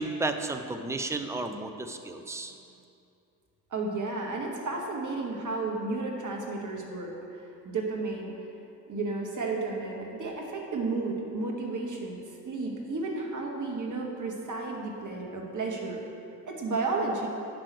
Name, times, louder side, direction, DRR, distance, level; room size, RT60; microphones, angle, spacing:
voice 1, 0.0-2.5, right 2 dB, 5° right, 7 dB, 0.5 m, -33 dB
voice 2, 3.7-8.4 8.9-16.0 16.5-17.3, right 3 dB, 35° right, 0 dB, 2.0 m, -33 dB
8.7 x 5.9 x 6.3 m, 2.6 s
hypercardioid pair, 60°, 50 cm